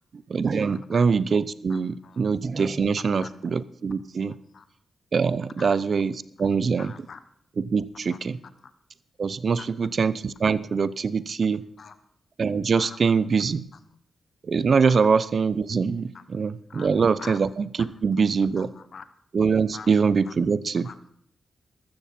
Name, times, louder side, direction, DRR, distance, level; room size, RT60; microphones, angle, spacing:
voice 1, 0.3-4.3 5.1-6.9 7.6-8.4 9.2-11.6 12.4-13.6 14.5-18.7 19.3-20.9, right 5 dB, 60° right, 17 dB, 0.7 m, -23 dB
voice 2, 1.7-2.2 3.2-3.3 4.5-4.6 5.6-5.8 6.8-7.2 8.1-8.7 9.6-9.7 11.8-12.0 12.8-13.0 14.9-15.0 16.1-16.3 16.7-16.9 17.2-17.4 17.8-17.9 18.6-19.0 19.7-19.9 20.3-20.4 20.8-21.1, left 5 dB, 65° left, 11 dB, 1.0 m, -43 dB
14.0 x 13.5 x 4.4 m, 0.69 s
cardioid pair, 65°, 0 cm